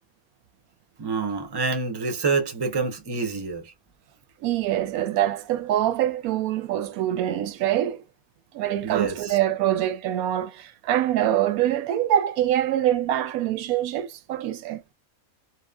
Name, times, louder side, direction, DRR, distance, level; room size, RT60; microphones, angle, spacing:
voice 1, 1.0-3.7 8.8-9.4, right 4 dB, 35° right, 0.4 m, -27 dB
voice 2, 4.4-8.0 8.5-14.8, right 12 dB, 80° right, 1.0 m, -24 dB
2.9 x 2.1 x 2.2 m
omnidirectional pair, 1.5 m